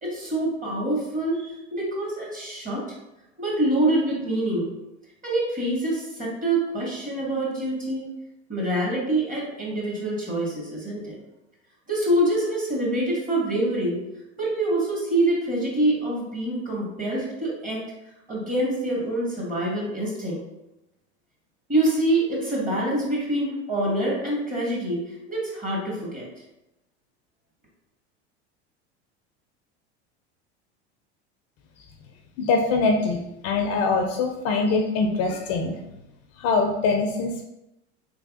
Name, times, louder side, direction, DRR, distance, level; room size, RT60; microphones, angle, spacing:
voice 1, 0.0-2.8 3.4-4.7 5.2-8.1 8.5-11.2 11.9-14.0 14.4-17.8 18.3-20.4 21.7-25.0 25.3-26.2, right 1 dB, 25° right, -3 dB, 1.5 m, -25 dB
voice 2, 32.4-35.8 36.4-37.5, left 3 dB, 45° left, 4 dB, 0.5 m, -23 dB
3.4 x 3.3 x 2.4 m, 0.90 s
supercardioid pair, 105°, 34 cm